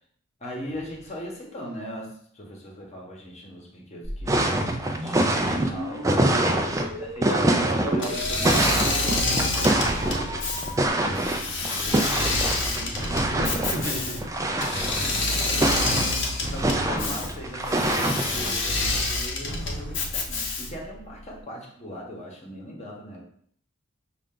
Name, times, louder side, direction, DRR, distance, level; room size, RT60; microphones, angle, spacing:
voice 1, 0.4-4.4 4.9-6.1 6.7-13.3 14.7-16.0 16.4-23.2, equal, 35° left, 0 dB, 1.0 m, -39 dB
sound 1, 4.0-10.9, right 1 dB, 80° right, 1.0 m, -36 dB
sound 2, 4.3-18.6, right 1 dB, 15° right, 0.4 m, -25 dB
voice 2, 6.3-6.7 12.7-14.2, right 1 dB, 55° right, -1 dB, 1.1 m, -33 dB
Engine / Mechanisms, 8.0-20.9, left 2 dB, 60° left, 0.8 m, -28 dB
5.5 x 2.5 x 3.7 m, 0.62 s
head